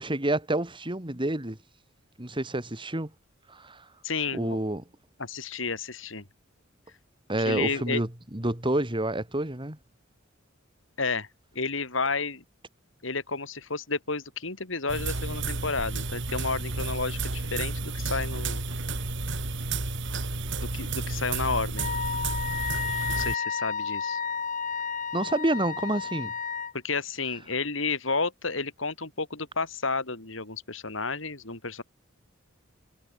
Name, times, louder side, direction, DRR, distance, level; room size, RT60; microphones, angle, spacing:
voice 1, 0.0-1.6 2.2-3.1 3.5-3.8 4.3-4.8 7.3-9.8 25.1-26.3, right 1 dB, 25° right, 2.5 m, -28 dB
voice 2, 4.0-4.6 5.2-6.3 7.4-8.0 11.0-11.3 11.5-12.4 13.0-18.6 20.6-21.9 23.1-24.2 26.7-31.8, left 4 dB, 70° left, 3.7 m, -31 dB
sound 1, 14.9-23.3, right 3 dB, 65° right, 2.7 m, -31 dB
Wind instrument woodwind instrument, 21.8-26.7, left 6 dB, 40° left, 5.5 m, -32 dB
head